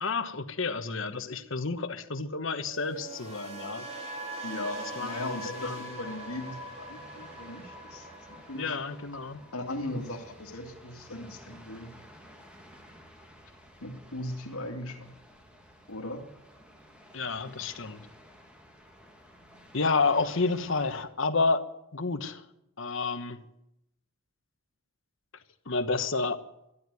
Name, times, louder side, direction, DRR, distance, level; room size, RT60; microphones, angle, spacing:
voice 1, 0.0-3.9 5.0-6.0 8.5-9.4 17.1-18.0 19.7-22.4 22.8-23.4 25.7-26.4, left 4 dB, 60° left, 1.2 m, -30 dB
sound 1, 2.7-10.8 11.0-11.4, right 1 dB, 30° right, 3.2 m, -42 dB
voice 2, 4.4-8.7 9.5-11.9 13.8-15.1 15.9-16.2, left 1 dB, 85° left, 2.3 m, -38 dB
sound 2, 5.9-21.0, equal, 5° right, 2.0 m, -53 dB
12.5 x 12.5 x 9.4 m
head